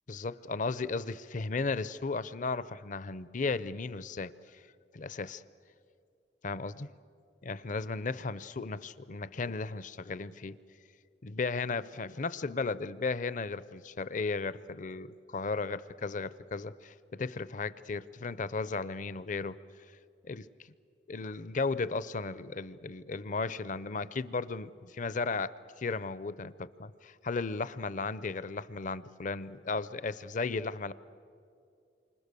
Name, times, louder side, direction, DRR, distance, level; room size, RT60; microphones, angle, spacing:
voice 1, 0.1-4.3 4.9-5.4 6.4-6.9 7.4-10.6 11.2-19.6 20.2-20.5 21.1-30.9, left 4 dB, 45° left, 16 dB, 0.6 m, -35 dB
28.5 x 25.5 x 6.8 m, 2.5 s
head